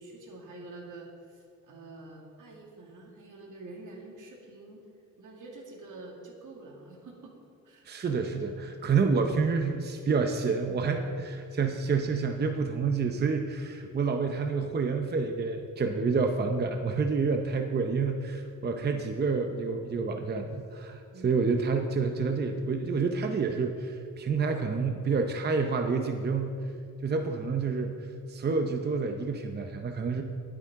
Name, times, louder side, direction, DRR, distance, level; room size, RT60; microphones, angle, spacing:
voice 1, 0.0-4.8 5.2-7.4 7.6-7.8 21.1-21.3 27.2-27.4, right 2 dB, 80° right, -1 dB, 2.3 m, -47 dB
voice 2, 7.9-26.7 27.0-27.9 28.3-30.2, right 4 dB, 35° right, 4 dB, 0.7 m, -28 dB
19.0 x 8.5 x 3.7 m, 2.3 s
wide cardioid pair, 150°, 31 cm